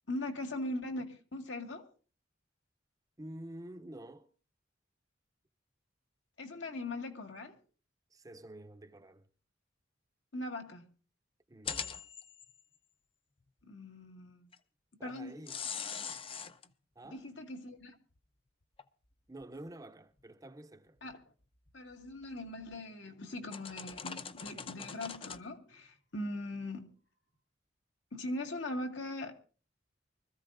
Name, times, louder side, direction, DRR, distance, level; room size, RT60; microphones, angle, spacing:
voice 1, 0.1-1.9 6.4-7.6 10.3-10.9 13.7-14.5 15.0-15.4 17.1-18.0 21.0-21.2 21.7-26.9 28.1-29.3, left 1 dB, 75° left, 1.9 m, -40 dB
voice 2, 3.2-4.3 8.1-9.3 11.5-11.9 15.0-15.6 17.0-17.3 19.3-21.0, right 1 dB, 20° right, 0.6 m, -49 dB
sound 1, 11.6-12.6 14.5-14.6 15.5-16.7 18.2-18.3 18.8-18.9 19.4-19.5 21.7-22.1 22.6-22.8 23.5-25.4, left 7 dB, 30° left, 0.6 m, -42 dB
24.5 x 14.0 x 2.6 m
head